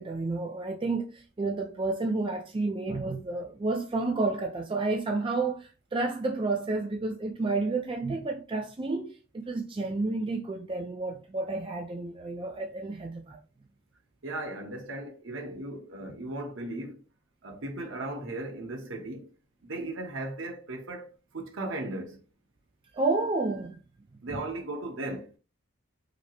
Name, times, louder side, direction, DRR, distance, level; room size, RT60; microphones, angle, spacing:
voice 1, 0.0-13.4 22.9-23.8 24.3-24.4, right 3 dB, 25° right, 0.4 m, -30 dB
voice 2, 14.2-17.0 17.4-19.3 19.6-22.2 24.2-25.3, right 2 dB, 65° right, 0.9 m, -37 dB
5.0 x 2.0 x 2.9 m
head